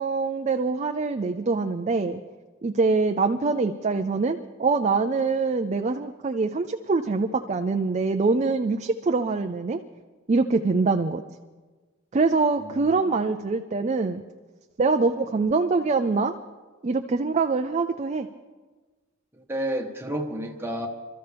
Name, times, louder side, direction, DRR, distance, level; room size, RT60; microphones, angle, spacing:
voice 1, 0.0-2.2 2.6-9.8 10.3-11.2 12.1-14.2 14.8-16.3 16.8-18.3, right 4 dB, 35° right, 6 dB, 0.4 m, -24 dB
voice 2, 12.6-13.1 19.5-20.9, right 1 dB, 10° right, 1 dB, 1.3 m, -31 dB
26.5 x 13.5 x 3.4 m, 1.3 s
head